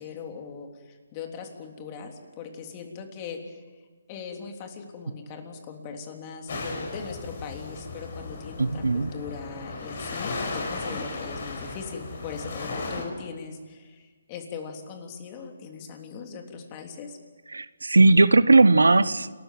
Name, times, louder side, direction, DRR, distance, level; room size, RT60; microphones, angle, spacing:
voice 1, 0.0-3.6 4.1-17.2, left 5 dB, 30° left, 3 dB, 3.4 m, -40 dB
sound 1, 6.5-13.0, left 3 dB, 55° left, 6.1 m, -35 dB
voice 2, 8.6-9.1 17.5-19.3, right 3 dB, 85° right, 17 dB, 0.9 m, -18 dB
29.0 x 14.0 x 9.3 m, 1.4 s
figure-of-eight pair, 150°, 0 cm